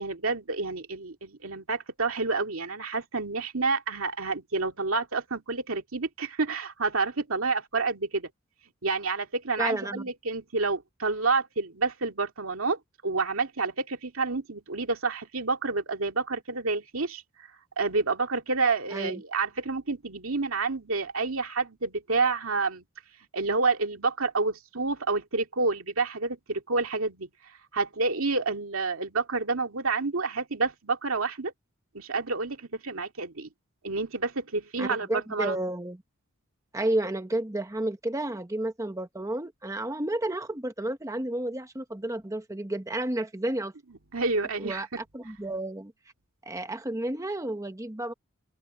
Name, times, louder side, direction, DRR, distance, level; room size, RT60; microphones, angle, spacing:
voice 1, 0.0-8.3 8.8-17.2 17.8-22.8 23.3-27.3 27.7-31.5 31.9-33.5 33.8-35.6 44.1-45.0, right 3 dB, 80° right, 2.2 m, -29 dB
voice 2, 9.6-10.0 18.9-19.2 34.8-36.0 36.7-43.7 44.6-45.9 46.4-48.1, right 1 dB, 15° right, 1.0 m, -31 dB
open air
head